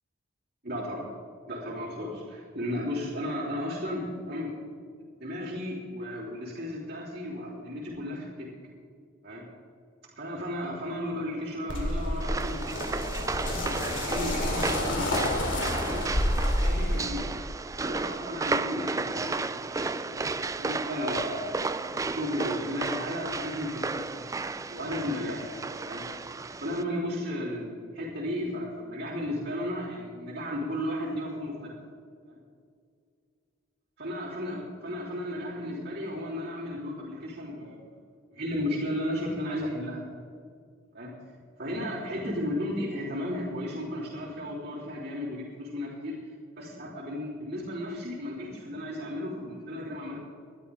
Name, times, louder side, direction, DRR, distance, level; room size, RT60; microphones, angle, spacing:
voice 1, 0.6-1.1 1.5-4.5 5.2-8.5 9.2-9.4 10.2-12.7 13.4-16.1 16.6-17.3 17.8-19.5 19.8-21.7 22.1-24.3 24.7-25.5 25.8-26.0 26.6-31.7 32.3-32.4 34.0-37.9 38.3-40.1 40.9-41.1 41.6-46.1 46.6-50.2, left 1 dB, 50° right, -8 dB, 3.6 m, -34 dB
sound 1, 11.7-17.1, left 1 dB, 60° left, 2.7 m, -29 dB
sound 2, 12.2-26.8, right 3 dB, 15° right, 0.3 m, -33 dB
21.0 x 12.5 x 3.6 m, 2.2 s
head